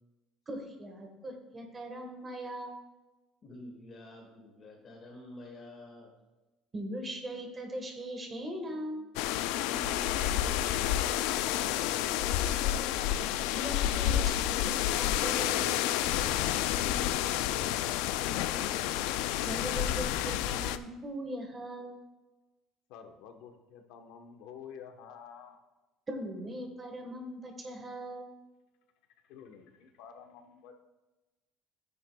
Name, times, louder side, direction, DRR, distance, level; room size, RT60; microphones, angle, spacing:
voice 1, 0.5-2.8 6.7-9.1 13.5-15.8 19.4-22.0 26.1-28.3, right 1 dB, 20° right, 3 dB, 1.4 m, -40 dB
voice 2, 3.4-6.1 9.6-11.2 11.5-13.0 16.3-18.8, left 2 dB, 25° left, 0 dB, 1.9 m, -48 dB
sound 1, 9.2-20.8, left 12 dB, 90° left, 0.4 m, -30 dB
voice 3, 22.9-25.6 29.3-30.7, left 7 dB, 70° left, 5 dB, 1.1 m, -49 dB
14.5 x 9.4 x 2.3 m, 1.1 s
cardioid pair, 175°, 0 cm